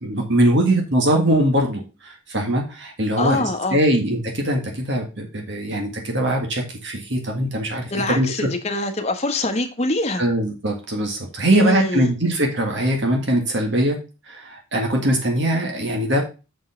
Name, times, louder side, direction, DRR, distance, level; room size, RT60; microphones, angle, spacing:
voice 1, 0.0-8.5 10.2-14.0 14.3-16.2, right 1 dB, 55° right, 1.9 m, -21 dB
voice 2, 3.2-3.8 7.9-10.2 11.5-12.1, left 2 dB, 30° left, 1.1 m, -24 dB
6.4 x 5.3 x 4.9 m
head